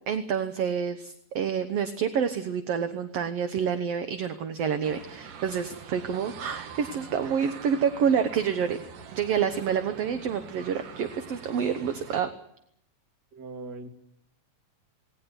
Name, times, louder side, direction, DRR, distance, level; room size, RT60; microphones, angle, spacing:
voice 1, 0.1-8.8 9.1-12.3, right 7 dB, 60° right, 10 dB, 1.9 m, -28 dB
sound 1, 4.8-12.2, right 7 dB, 75° right, 3.3 m, -44 dB
voice 2, 13.3-13.9, right 3 dB, 35° right, 5 dB, 2.6 m, -40 dB
19.5 x 18.5 x 9.8 m, 0.72 s
omnidirectional pair, 3.7 m